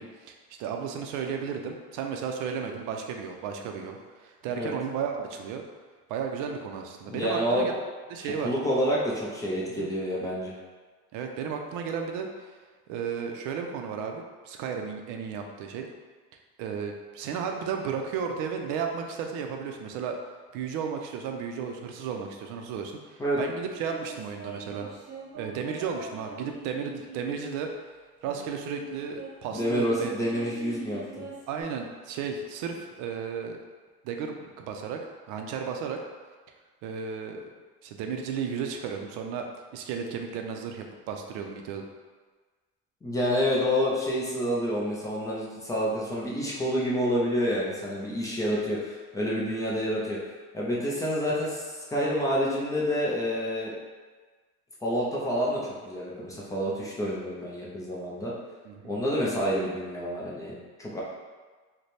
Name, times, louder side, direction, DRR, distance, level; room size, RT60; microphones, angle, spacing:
voice 1, 0.0-5.6 6.1-7.7 8.1-8.5 9.7-9.9 11.1-12.5 12.9-15.9 16.6-20.2 20.5-24.9 25.4-27.7 28.2-30.1 31.5-33.6 34.0-35.0 35.3-36.0 36.8-37.4 37.8-39.5 39.7-41.8 58.6-58.9, right 6 dB, 85° right, 3 dB, 0.5 m, -34 dB
voice 2, 7.1-7.7 8.4-10.5 23.2-23.4 29.5-31.3 43.0-50.2 50.5-53.7 54.8-58.3 58.8-60.5 60.8-61.0, equal, 10° left, -6 dB, 0.4 m, -28 dB
sound 1, 23.3-27.7 28.2-31.6, right 4 dB, 35° right, 0.9 m, -43 dB
3.2 x 2.2 x 4.1 m, 1.4 s
cardioid pair, 180°, 29 cm